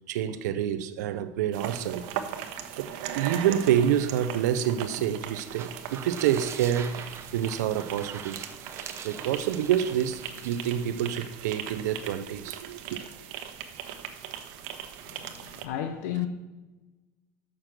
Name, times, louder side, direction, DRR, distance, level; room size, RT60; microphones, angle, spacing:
voice 1, 0.1-2.1 2.8-2.9 3.1-7.0 7.3-8.4 9.0-13.0, right 10 dB, 90° right, 0.6 m, -27 dB
sound 1, 1.5-15.7, right 9 dB, 70° right, 1.0 m, -39 dB
sound 2, 5.4-11.2, right 7 dB, 30° right, 0.8 m, -43 dB
voice 2, 15.1-16.3, left 11 dB, 80° left, 0.8 m, -33 dB
6.7 x 6.1 x 7.4 m
supercardioid pair, 115°, 9 cm